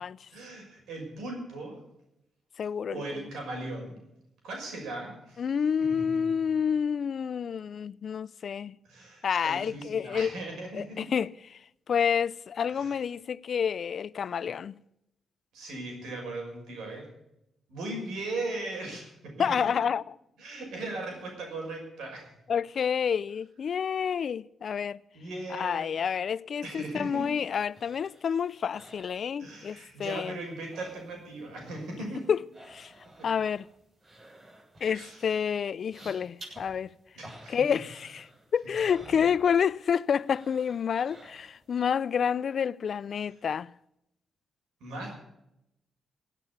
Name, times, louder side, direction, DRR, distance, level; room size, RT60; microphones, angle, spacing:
voice 1, 0.3-1.8 2.9-4.0 4.4-5.4 6.1-6.2 8.8-11.0 12.7-12.9 15.5-17.1 17.7-19.7 20.4-22.3 25.1-25.9 26.6-27.3 29.4-32.2 33.2-33.3 34.9-35.3 37.1-37.7 44.8-45.1, right 2 dB, 85° right, 5.9 m, -38 dB
voice 2, 2.6-3.2 5.4-8.8 9.2-10.3 10.7-11.3 11.9-14.8 19.4-20.1 22.5-25.0 25.5-30.4 32.3-32.9 33.2-33.7 34.8-36.9 37.5-43.7, left 7 dB, 60° left, 0.4 m, -29 dB
sound 1, 26.8-29.8 30.1-31.5 31.7-39.9 40.2-41.8 42.2-42.3, right 1 dB, 45° right, 7.6 m, -53 dB
17.0 x 8.4 x 8.4 m
cardioid pair, 70°, 0 cm